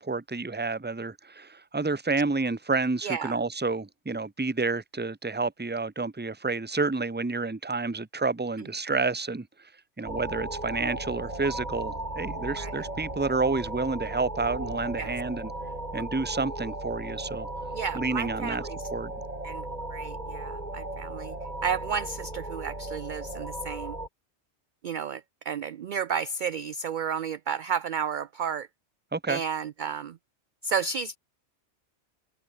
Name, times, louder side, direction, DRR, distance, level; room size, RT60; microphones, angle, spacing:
voice 1, 0.0-9.7 10.0-15.5 15.9-17.5 17.9-18.6 18.9-19.1 29.1-29.4, right 3 dB, 10° right, 0.8 m, -29 dB
voice 2, 3.0-3.4 12.6-12.7 15.0-15.1 17.7-18.8 19.4-19.6 19.9-21.4 21.6-24.0 24.8-28.7 29.3-30.2 30.6-31.2, right 6 dB, 55° right, 0.5 m, -32 dB
sound 1, 10.1-24.1, right 2 dB, 35° right, 4.0 m, -36 dB
omnidirectional pair, 1.2 m